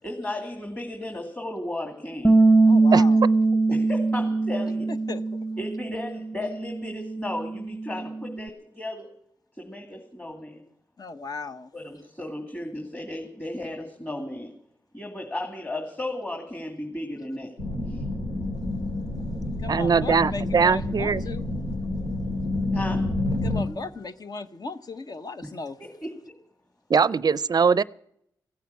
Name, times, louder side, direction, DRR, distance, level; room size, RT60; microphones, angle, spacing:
voice 1, 0.0-2.4 3.7-4.9 5.6-9.1 9.5-10.6 11.7-14.5 14.9-17.5 17.9-18.0 22.7-23.1 25.4-25.5 25.8-26.1, left 1 dB, 20° left, 2.6 m, -35 dB
Bass guitar, 2.2-8.5, right 3 dB, 10° right, 0.8 m, -22 dB
voice 2, 2.6-3.2 5.1-5.4 11.0-11.7 19.6-21.5 23.4-25.8, left 3 dB, 50° left, 1.1 m, -36 dB
sound 1, 17.6-23.6, left 2 dB, 90° left, 2.4 m, -29 dB
voice 3, 19.7-21.2 26.9-27.8, right 5 dB, 50° right, 0.5 m, -21 dB
16.5 x 9.2 x 8.5 m
supercardioid pair, 45°, 9 cm